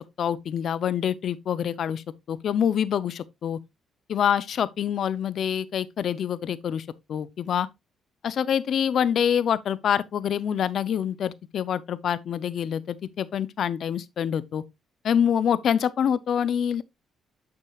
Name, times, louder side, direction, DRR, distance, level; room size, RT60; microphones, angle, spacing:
voice 1, 0.0-3.6 4.1-7.7 8.2-14.6 15.0-16.8, left 8 dB, 60° left, 0.6 m, -26 dB
8.4 x 6.5 x 2.4 m
cardioid pair, 90°, 0 cm